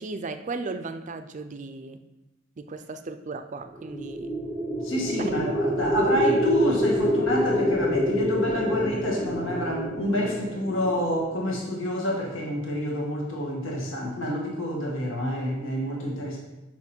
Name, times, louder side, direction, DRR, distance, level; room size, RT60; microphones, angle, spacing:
voice 1, 0.0-2.0 2.6-4.3 5.3-5.6, right 3 dB, 40° right, 8 dB, 0.5 m, -36 dB
sound 1, 3.8-11.9, equal, 10° left, 0.8 m, -27 dB
voice 2, 4.8-16.4, equal, 85° left, -2 dB, 1.8 m, -28 dB
6.1 x 5.9 x 4.4 m, 1.0 s
head